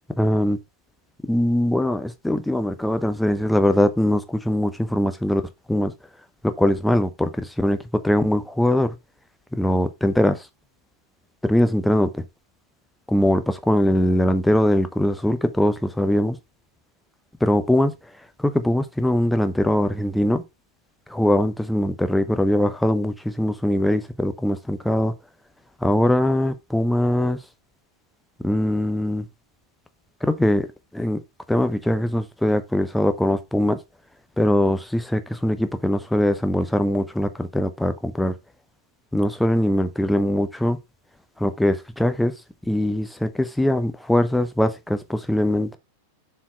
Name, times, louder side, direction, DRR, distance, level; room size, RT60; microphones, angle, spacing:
voice 1, 0.1-0.6 1.3-5.4 5.7-5.9 6.4-9.0 9.5-10.5 11.4-12.2 13.1-16.4 17.4-17.9 18.4-20.4 21.1-25.1 25.8-27.4 28.4-29.3 30.2-30.7 30.9-31.2 31.5-33.8 34.4-38.3 39.1-40.8 41.4-42.3 42.7-45.8, left 1 dB, 5° left, 0.8 m, -21 dB
7.3 x 4.4 x 4.2 m
figure-of-eight pair, 90°, 0 cm